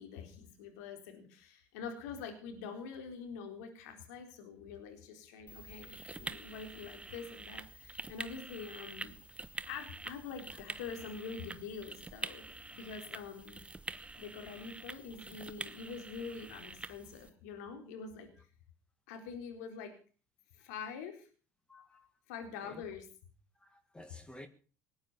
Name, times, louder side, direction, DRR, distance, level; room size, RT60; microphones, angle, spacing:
voice 1, 0.0-9.2 9.7-12.5 12.7-13.6 14.0-18.3 19.1-19.9 20.5-21.3 22.3-23.1, left 5 dB, 75° left, 4.1 m, -45 dB
sound 1, 5.5-17.3, right 2 dB, 15° right, 1.0 m, -46 dB
voice 2, 21.7-22.2 22.6-22.8 23.6-24.5, left 1 dB, 10° left, 1.9 m, -53 dB
19.5 x 9.5 x 6.8 m
hypercardioid pair, 75°, 9 cm